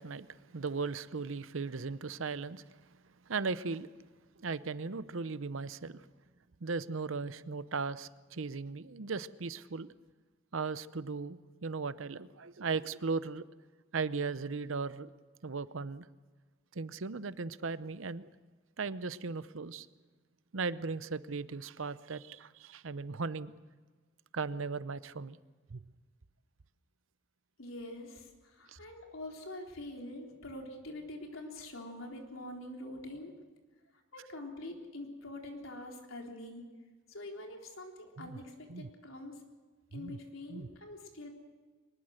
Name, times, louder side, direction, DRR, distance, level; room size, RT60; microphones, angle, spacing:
voice 1, 0.0-2.7 3.3-3.9 4.4-6.1 6.6-9.9 10.5-13.4 13.9-15.1 15.4-16.1 16.7-18.3 18.8-19.9 20.5-23.5 24.3-25.4 25.7-25.8 28.7-28.8 38.2-38.4 38.7-38.9 39.9-40.2 40.5-40.7, right 4 dB, 75° right, 15 dB, 0.7 m, -37 dB
voice 2, 27.6-33.3 34.1-36.6 37.1-39.4 39.9-41.3, left 1 dB, 85° left, 1 dB, 3.7 m, -45 dB
23.0 x 20.5 x 6.5 m, 1.4 s
head